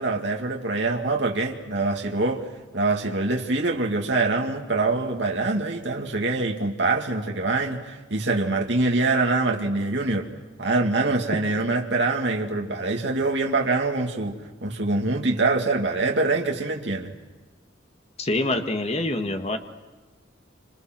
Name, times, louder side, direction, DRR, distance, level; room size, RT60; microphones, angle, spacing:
voice 1, 0.0-2.5 2.7-10.3 10.6-17.1, right 3 dB, 65° right, 1 dB, 2.4 m, -24 dB
voice 2, 18.2-19.6, left 2 dB, 35° left, 6 dB, 1.8 m, -25 dB
29.5 x 27.5 x 6.2 m, 1.3 s
head